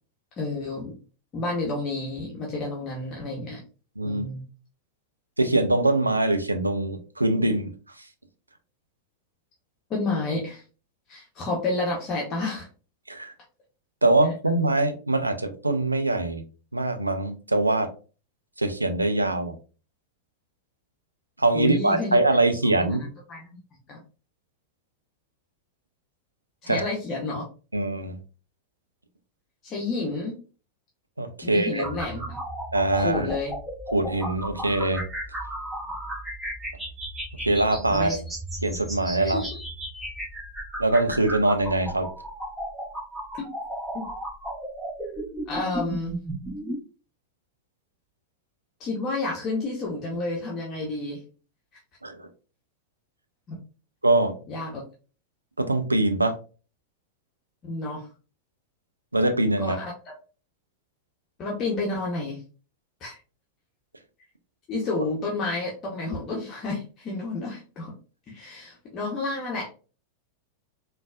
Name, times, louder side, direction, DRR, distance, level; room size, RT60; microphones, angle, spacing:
voice 1, 0.4-0.9 1.3-3.6 4.0-4.4 9.9-10.6 11.1-12.7 21.5-22.2 22.6-23.4 23.9-24.0 26.6-27.5 29.6-30.4 31.4-32.4 32.9-33.5 37.9-38.2 39.2-39.5 43.3-43.4 43.9-44.1 45.5-46.2 48.8-51.2 53.5-53.6 54.5-54.8 57.6-58.1 59.6-59.9 61.4-62.4 63.0-63.2 64.7-67.9 68.3-69.7, left 2 dB, 30° left, -3 dB, 0.8 m, -30 dB
voice 2, 5.4-7.7 13.1-13.3 14.0-16.4 16.7-17.9 18.6-19.6 21.4-23.0 26.7-26.9 27.7-28.2 31.2-31.8 32.7-33.3 33.9-35.0 37.5-38.2 38.6-39.4 40.8-42.1 52.0-52.3 54.0-54.4 55.6-56.3 59.1-59.8, right 2 dB, 85° right, 7 dB, 0.4 m, -23 dB
sound 1, 31.8-46.8, right 1 dB, 5° right, 0.9 m, -35 dB
3.8 x 2.3 x 2.3 m, 0.36 s
figure-of-eight pair, 90°, 0 cm